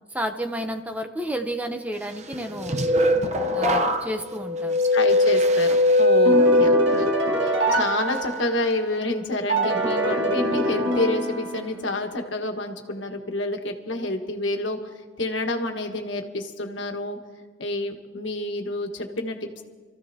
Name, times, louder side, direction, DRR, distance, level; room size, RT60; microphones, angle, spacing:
voice 1, 0.1-2.8 3.5-4.8, equal, 10° right, 6 dB, 0.7 m, -31 dB
sound 1, 2.3-7.4 7.8-8.2, left 1 dB, 35° right, 0.9 m, -20 dB
voice 2, 4.9-7.1 7.4-14.8 15.2-17.2 17.6-19.6, left 2 dB, 75° left, 3 dB, 1.5 m, -28 dB
sound 2, 6.3-8.9 9.5-12.0, right 1 dB, 70° right, 1.8 m, -25 dB
28.0 x 14.5 x 2.9 m, 1.5 s
head